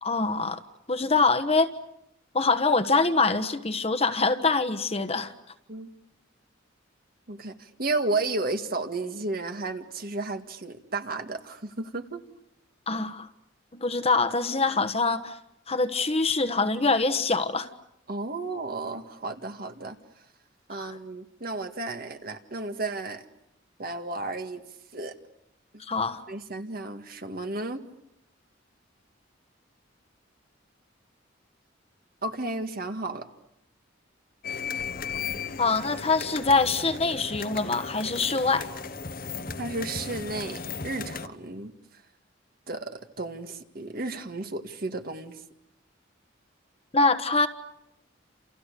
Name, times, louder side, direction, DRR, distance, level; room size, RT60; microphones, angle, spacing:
voice 1, 0.0-0.6 0.9-1.7 2.3-5.3 12.9-13.3 13.7-15.4 15.7-17.7 20.7-20.9 25.8-26.2 35.6-38.7 46.9-47.5, left 3 dB, 30° left, 8 dB, 1.3 m, -24 dB
voice 2, 7.3-12.2 18.1-20.0 20.7-23.2 23.8-24.6 24.9-25.1 25.7-25.8 26.3-27.8 32.2-33.2 39.6-41.7 42.7-45.4, right 2 dB, 50° right, 7 dB, 1.9 m, -33 dB
sound 1, 34.4-41.3, left 5 dB, 45° left, 1.2 m, -36 dB
29.5 x 28.5 x 6.8 m, 0.82 s
head